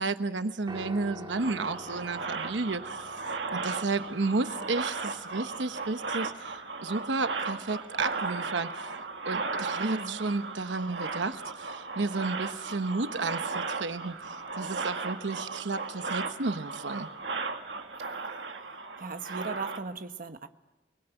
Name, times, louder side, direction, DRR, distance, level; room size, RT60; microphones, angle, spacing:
voice 1, 0.0-3.2 3.5-9.0 9.2-17.1, right 3 dB, 90° right, 9 dB, 1.1 m, -32 dB
Piano, 0.7-8.9, right 1 dB, 25° right, 2.2 m, -49 dB
sound 1, 1.3-19.8, right 4 dB, 70° right, 1.9 m, -36 dB
voice 2, 9.8-10.2 17.9-18.7 19.0-20.5, right 4 dB, 50° right, 8 dB, 1.3 m, -38 dB
29.5 x 21.0 x 9.1 m, 1.0 s
head